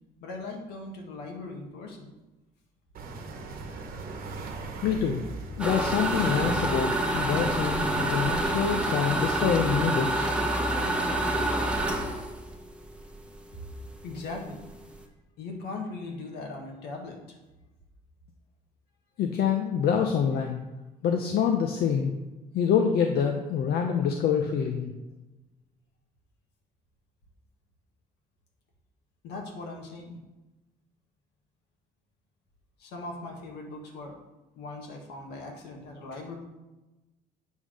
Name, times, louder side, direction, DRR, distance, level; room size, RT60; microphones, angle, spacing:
voice 1, 0.2-2.1 14.0-14.6 15.4-17.4 29.2-30.2 32.8-34.2 34.6-36.3, left 3 dB, 80° left, 2 dB, 1.6 m, -39 dB
sound 1, 2.9-8.6, right 4 dB, 60° right, 1.2 m, -39 dB
voice 2, 4.8-5.2 5.6-10.3 19.2-20.6 21.0-22.1 22.5-24.9, left 7 dB, 65° left, 3 dB, 0.7 m, -26 dB
sound 2, 5.6-13.4 13.8-13.9 14.3-14.4 14.6-15.0, right 1 dB, 5° right, 1.0 m, -27 dB
8.3 x 3.6 x 6.3 m, 1.1 s
cardioid pair, 110°, 17 cm